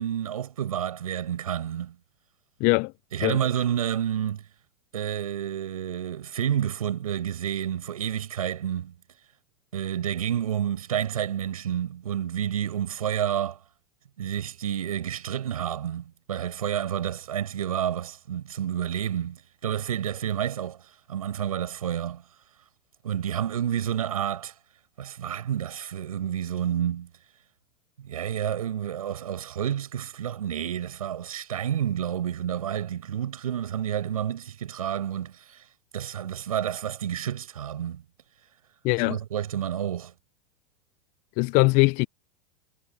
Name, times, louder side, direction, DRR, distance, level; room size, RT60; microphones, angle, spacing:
voice 1, 0.0-1.9 3.1-4.4 4.9-8.9 9.7-13.6 14.2-20.8 21.1-22.2 23.0-24.5 25.0-27.1 28.0-35.6 35.9-38.0 39.0-40.1, right 10 dB, 80° right, 7.7 m, -29 dB
voice 2, 2.6-2.9 3.2-3.4 38.8-39.2 41.4-42.1, left 27 dB, 50° left, 0.7 m, -21 dB
hypercardioid pair, 95°, 18 cm